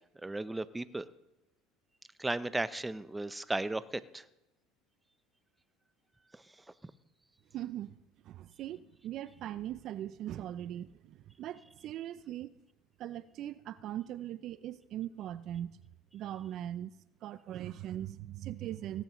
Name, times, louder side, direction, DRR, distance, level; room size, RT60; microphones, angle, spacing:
voice 1, 0.2-1.0 2.2-4.2 6.3-6.4 6.8-6.9, right 2 dB, 10° right, 0.6 m, -35 dB
voice 2, 7.5-7.9 8.2-12.6 13.0-15.8 16.1-16.9 17.2-19.0, right 12 dB, 55° right, 0.4 m, -40 dB
17.5 x 15.0 x 3.1 m
supercardioid pair, 85°, 0 cm